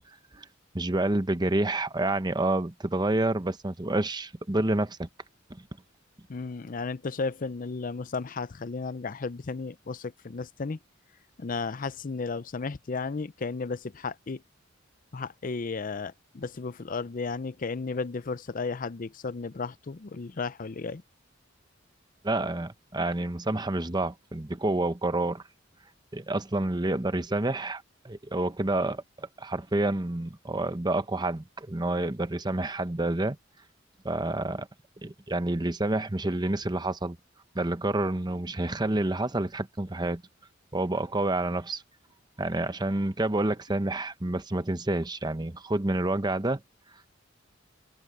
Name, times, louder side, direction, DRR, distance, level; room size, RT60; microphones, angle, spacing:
voice 1, 0.7-5.1 5.5-5.6 22.2-25.4 26.1-33.4 34.0-34.7 35.0-37.2 37.5-40.2 40.7-41.8 42.4-46.6, right 2 dB, 20° right, 0.9 m, -28 dB
voice 2, 6.3-10.8 11.4-14.4 15.1-21.0, left 4 dB, 45° left, 0.5 m, -34 dB
head